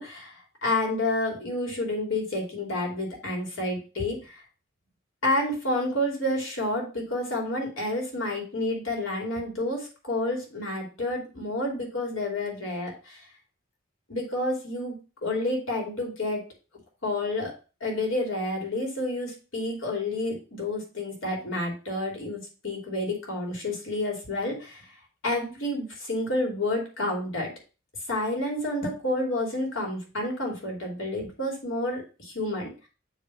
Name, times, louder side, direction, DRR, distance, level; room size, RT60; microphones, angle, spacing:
voice 1, 0.0-4.4 5.2-13.2 14.1-15.0 15.2-16.4 17.0-17.5 17.8-24.9 25.2-27.5 28.1-32.9, left 1 dB, 85° left, -1 dB, 2.8 m, -29 dB
7.3 x 3.2 x 5.9 m, 0.35 s
head